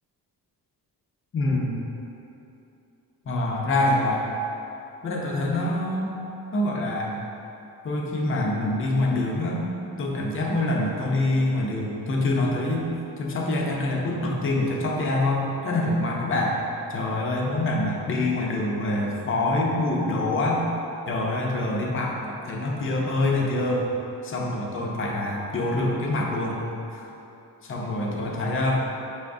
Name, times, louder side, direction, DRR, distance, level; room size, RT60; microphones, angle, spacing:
voice 1, 1.3-1.8 3.3-4.2 5.0-6.2 6.5-7.2 7.8-9.6 10.0-12.9 13.2-16.6 16.9-20.6 21.1-23.9 24.2-26.6 26.9-27.0 27.6-28.7, left 2 dB, 35° left, -2 dB, 0.5 m, -25 dB
5.6 x 3.5 x 2.6 m, 2.9 s
wide cardioid pair, 155°, 39 cm